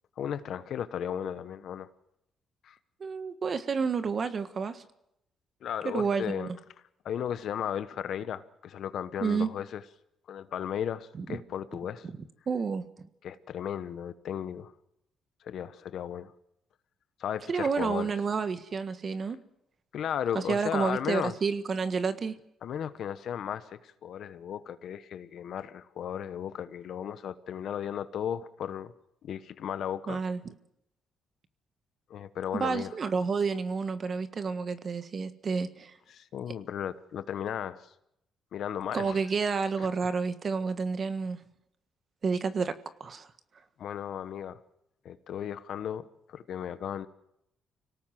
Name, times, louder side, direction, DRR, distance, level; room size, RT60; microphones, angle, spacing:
voice 1, 0.2-1.9 2.6-2.8 5.6-6.5 7.0-9.8 10.3-12.1 13.2-14.7 15.4-16.3 17.2-18.1 19.9-21.3 22.6-28.9 29.2-30.2 32.1-32.9 36.1-37.9 38.5-39.2 39.8-39.9 43.8-44.6 45.0-47.1, left 9 dB, 70° left, 13 dB, 1.2 m, -35 dB
voice 2, 3.0-4.8 5.8-6.5 9.2-9.5 11.2-11.4 12.5-12.8 17.5-19.4 20.3-22.3 30.1-30.5 32.5-35.9 38.9-41.4 42.2-42.7 43.0-43.3, right 5 dB, 45° right, 11 dB, 1.5 m, -30 dB
25.5 x 18.0 x 7.7 m, 0.81 s
cardioid pair, 90°, 0 cm